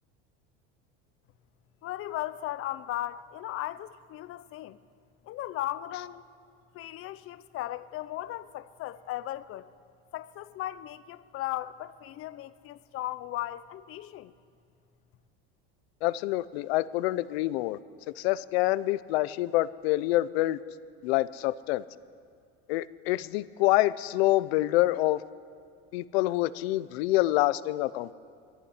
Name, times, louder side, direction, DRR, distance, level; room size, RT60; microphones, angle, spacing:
voice 1, 1.8-4.8 5.3-6.3 6.7-9.7 10.1-14.3, left 14 dB, 45° left, 0.8 m, -36 dB
voice 2, 16.0-17.8 18.2-20.6 21.0-21.8 22.7-25.2 25.9-28.1, left 17 dB, 90° left, 0.8 m, -26 dB
20.5 x 14.5 x 9.9 m
cardioid pair, 140°, 30 cm